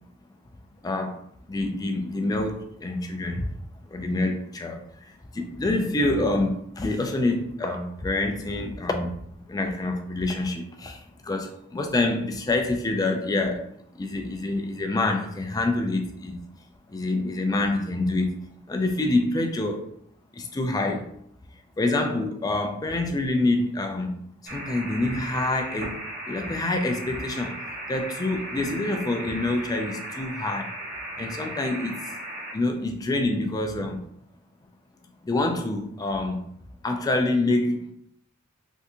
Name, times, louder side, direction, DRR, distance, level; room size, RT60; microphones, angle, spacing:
voice 1, 0.8-1.2 1.5-3.5 3.9-9.2 9.5-16.4 16.9-19.9 20.3-21.1 21.8-24.2 24.5-26.0 26.3-27.5 27.9-30.8 31.2-32.1 32.5-34.0 35.2-36.4 36.8-37.9, left 2 dB, 15° left, 4 dB, 0.3 m, -26 dB
sound 1, 24.5-32.5, right 1 dB, 50° right, 1.0 m, -36 dB
3.5 x 2.7 x 2.6 m, 0.70 s
head